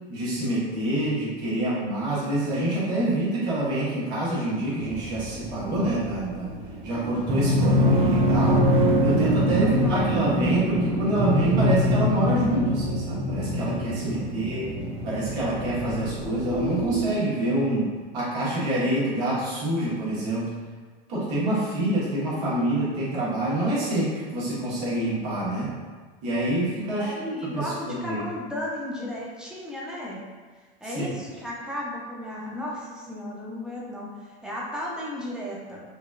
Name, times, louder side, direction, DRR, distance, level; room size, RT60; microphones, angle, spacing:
voice 1, 0.1-6.5 6.8-8.7 9.0-14.7 15.0-20.5 21.1-25.7 26.2-27.1 27.5-28.2 30.9-31.1, right 1 dB, 55° right, -8 dB, 1.2 m, -26 dB
sound 1, 4.8-17.0, equal, 20° right, 0.3 m, -24 dB
voice 2, 9.6-10.1 14.2-15.0 27.0-30.3 30.8-35.8, left 1 dB, ahead, -6 dB, 0.7 m, -34 dB
3.9 x 2.2 x 2.3 m, 1.4 s
hypercardioid pair, 90°, 30 cm